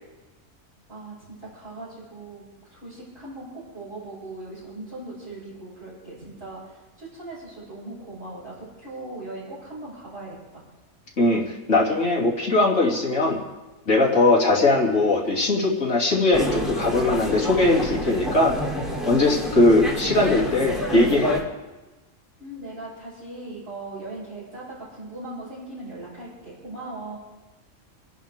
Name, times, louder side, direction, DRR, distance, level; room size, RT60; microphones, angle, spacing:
voice 1, 0.9-10.6 22.4-27.2, right 2 dB, 45° right, -12 dB, 6.9 m, -39 dB
voice 2, 11.2-13.4 13.9-18.5 19.0-21.4, left 2 dB, 60° left, -3 dB, 3.2 m, -20 dB
sound 1, 16.3-21.4, equal, ahead, 3.0 m, -29 dB
28.0 x 11.0 x 3.5 m, 1.1 s
omnidirectional pair, 1.5 m